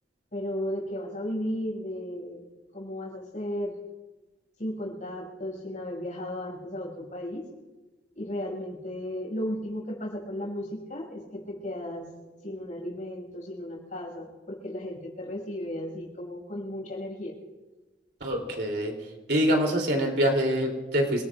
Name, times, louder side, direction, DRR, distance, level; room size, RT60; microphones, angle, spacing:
voice 1, 0.3-2.4 2.7-3.7 4.6-7.4 8.1-12.1 12.4-17.3, left 1 dB, 45° left, -1 dB, 6.3 m, -35 dB
voice 2, 18.2-18.9 19.3-21.2, equal, 70° right, 1 dB, 3.1 m, -25 dB
28.0 x 19.0 x 2.5 m, 1.2 s
head